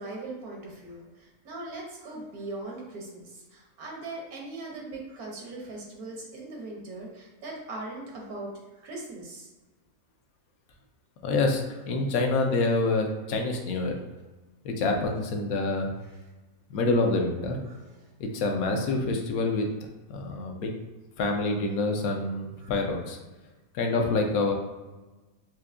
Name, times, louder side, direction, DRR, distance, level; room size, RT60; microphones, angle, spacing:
voice 1, 0.0-9.5 17.7-18.1 22.6-22.7, right 2 dB, 85° right, -2 dB, 1.5 m, -40 dB
voice 2, 11.2-14.0 14.6-15.9 16.7-17.6 18.3-19.7 20.1-20.7 21.2-23.2 23.7-24.5, left 3 dB, 75° left, 3 dB, 1.1 m, -26 dB
4.5 x 2.7 x 2.5 m, 1.2 s
omnidirectional pair, 1.6 m